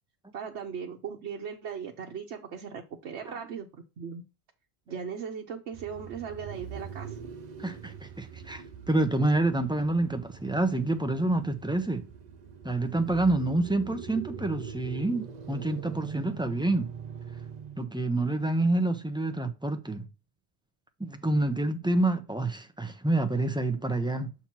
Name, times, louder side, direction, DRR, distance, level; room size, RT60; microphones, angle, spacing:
voice 1, 0.3-4.2 4.9-7.2, right 7 dB, 90° right, 1.1 m, -38 dB
sound 1, 5.7-17.9, right 6 dB, 50° right, 0.6 m, -43 dB
voice 2, 7.6-12.1 12.6-16.9 17.8-20.1 21.0-24.3, right 2 dB, 5° right, 0.6 m, -28 dB
7.0 x 3.0 x 5.9 m
omnidirectional pair, 1.1 m